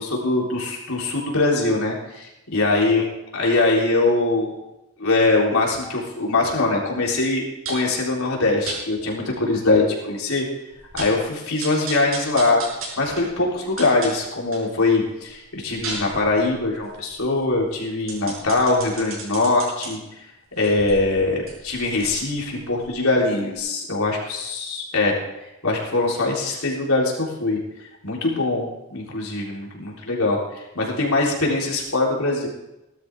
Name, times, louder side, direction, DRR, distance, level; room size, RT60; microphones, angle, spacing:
voice 1, 0.0-3.0 3.3-4.6 5.0-10.4 10.9-12.6 13.0-20.3 20.5-25.2 25.4-32.5, left 2 dB, 80° left, -2 dB, 3.9 m, -22 dB
sound 1, 7.7-7.9 8.7-8.8 9.4-9.5 9.8-9.9 10.3-10.4 10.7-11.2 11.6-14.7 15.1-19.9 20.5-23.2 23.5-23.6, right 3 dB, 70° right, 5.8 m, -36 dB
18.5 x 12.5 x 3.7 m, 0.93 s
head